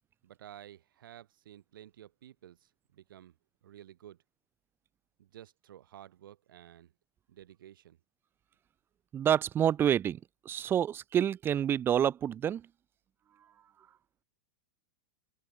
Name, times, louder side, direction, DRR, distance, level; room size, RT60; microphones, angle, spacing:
voice 1, 0.2-3.4 3.6-4.2 5.2-6.9 7.3-8.0, right 11 dB, 80° right, 7.2 m, -53 dB
voice 2, 9.1-10.2 10.4-12.7, right 9 dB, 20° right, 1.4 m, -28 dB
open air
supercardioid pair, 155°, 11 cm